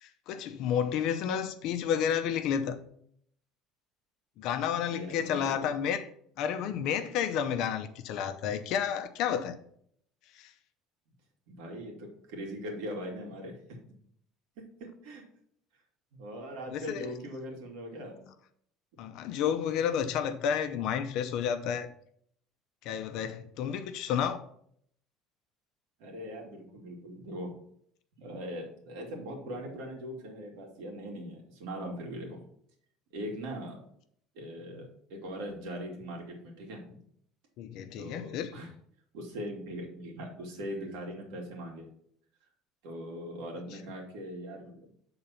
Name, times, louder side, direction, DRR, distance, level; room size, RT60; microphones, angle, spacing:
voice 1, 0.0-2.8 4.4-6.1 6.4-9.6 10.3-10.5 16.7-17.1 19.0-21.9 22.8-24.5 37.6-38.5, left 8 dB, 60° left, 0.7 m, -31 dB
voice 2, 4.7-5.7 11.5-13.8 14.8-15.2 16.1-18.2 26.0-27.5 28.2-32.4 33.1-33.9 34.3-36.8 38.0-38.7 39.1-41.9 42.8-44.9, equal, 85° right, 2.2 m, -40 dB
7.0 x 3.9 x 5.7 m
cardioid pair, 155°, 0 cm